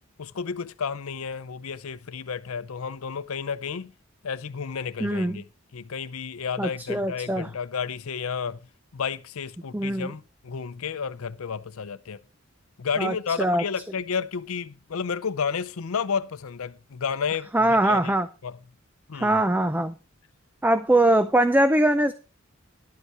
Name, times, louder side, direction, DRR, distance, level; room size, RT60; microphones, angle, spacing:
voice 1, 0.2-3.9 4.2-5.5 5.7-8.6 8.9-12.2 12.8-18.1 18.4-18.6 19.1-19.4, left 6 dB, 90° left, 0.6 m, -31 dB
voice 2, 5.0-5.4 6.6-7.5 9.7-10.1 13.0-13.6 17.5-18.3 19.1-19.9 20.6-22.1, right 1 dB, 10° right, 0.4 m, -22 dB
11.5 x 8.2 x 4.7 m
head